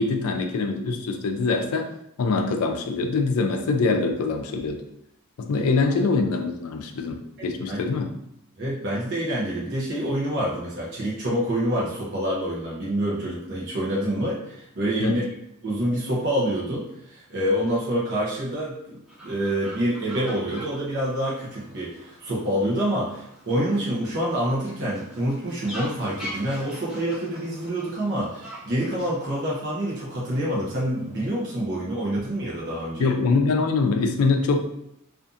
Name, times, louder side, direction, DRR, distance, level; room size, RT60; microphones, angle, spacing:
voice 1, 0.0-1.9 2.2-4.8 5.4-8.1 15.0-15.2 33.0-34.6, left 3 dB, 80° left, 5 dB, 0.4 m, -24 dB
voice 2, 7.4-7.8 8.6-15.2 15.6-19.0 19.2-33.1, right 1 dB, 55° right, -6 dB, 0.7 m, -27 dB
Fowl, 19.1-31.6, equal, 5° right, 0.9 m, -44 dB
2.6 x 2.4 x 2.4 m, 0.77 s
head